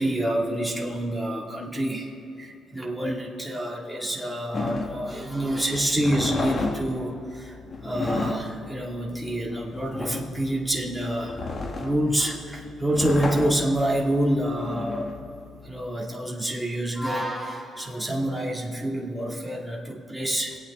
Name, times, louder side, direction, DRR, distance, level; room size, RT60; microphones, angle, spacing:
voice 1, 0.0-7.6 7.8-11.5 11.8-15.1 15.6-20.6, right 1 dB, ahead, -3 dB, 2.0 m, -27 dB
sound 1, 4.5-15.9, left 3 dB, 40° left, 1.3 m, -32 dB
23.0 x 8.6 x 3.6 m, 2.6 s
cardioid pair, 90°, 0 cm